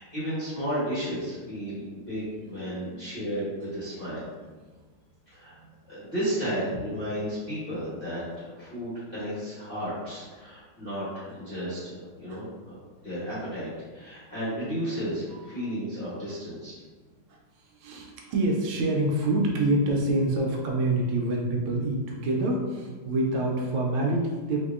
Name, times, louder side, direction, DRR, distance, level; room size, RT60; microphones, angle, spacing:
voice 1, 0.0-4.2 5.3-5.6 5.9-12.4 13.0-16.7, equal, 40° left, -11 dB, 0.8 m, -33 dB
voice 2, 2.4-3.1 4.6-4.7 5.6-5.7 12.3-12.4 15.3-15.7 17.3-24.6, right 2 dB, 80° right, 0 dB, 1.4 m, -27 dB
4.5 x 2.6 x 2.4 m, 1.4 s
omnidirectional pair, 2.3 m